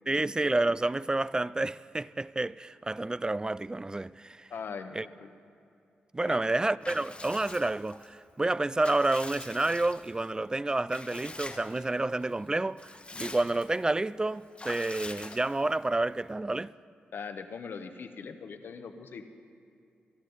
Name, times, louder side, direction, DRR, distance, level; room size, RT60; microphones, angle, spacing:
voice 1, 0.1-4.5 4.9-5.1 6.1-16.7, right 2 dB, 20° right, 0.3 m, -29 dB
voice 2, 4.5-5.3 6.2-6.5 17.1-19.3, left 5 dB, 70° left, 0.9 m, -41 dB
Water / Bathtub (filling or washing) / Liquid, 6.8-8.1 8.5-10.3 10.9-11.9 12.2-12.3 12.6-13.8 14.6-15.8, left 2 dB, 30° left, 1.0 m, -44 dB
23.5 x 11.5 x 4.0 m
cardioid pair, 50°, 4 cm